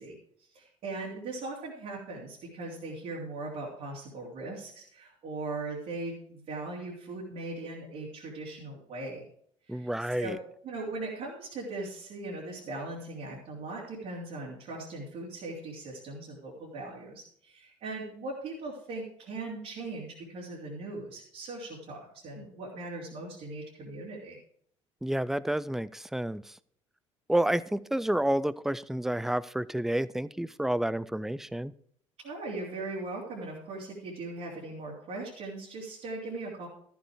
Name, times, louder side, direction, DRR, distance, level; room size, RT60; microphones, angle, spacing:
voice 1, 0.0-9.2 9.7-10.3 10.6-24.4 32.2-36.7, right 2 dB, 50° right, -5 dB, 3.3 m, -39 dB
voice 2, 9.7-10.4 25.0-26.4 27.3-31.7, right 1 dB, ahead, 20 dB, 0.4 m, -29 dB
14.0 x 7.2 x 4.8 m, 0.63 s
figure-of-eight pair, 60°, 16 cm